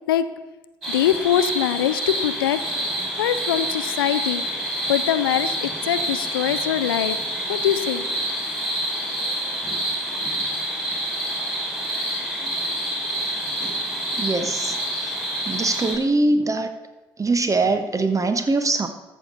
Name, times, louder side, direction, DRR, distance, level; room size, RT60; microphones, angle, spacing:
sound 1, 0.8-16.0, right 1 dB, 5° right, 4.6 m, -27 dB
voice 1, 0.9-2.6 3.1-4.4 4.9-7.2 7.5-8.1, left 11 dB, 80° left, 13 dB, 0.4 m, -23 dB
voice 2, 14.2-14.7 15.5-16.7 17.2-18.9, right 2 dB, 25° right, 9 dB, 1.2 m, -22 dB
13.5 x 6.5 x 5.4 m, 1.1 s
figure-of-eight pair, 45°, 12 cm